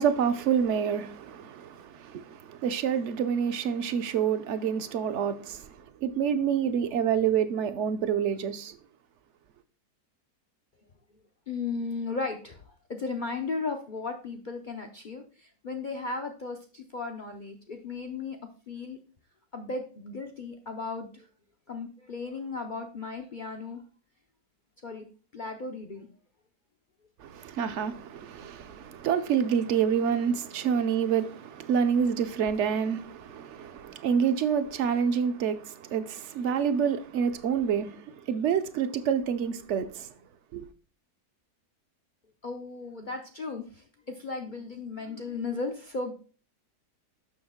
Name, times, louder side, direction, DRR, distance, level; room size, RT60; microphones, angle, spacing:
voice 1, 0.0-8.7 27.2-40.1 40.5-40.7, right 7 dB, 65° right, 0.7 m, -28 dB
voice 2, 11.5-18.4 18.7-19.0 19.5-21.3 21.7-23.8 24.8-26.1 42.4-46.1, left 4 dB, 80° left, 0.4 m, -36 dB
7.0 x 6.3 x 3.6 m
omnidirectional pair, 1.7 m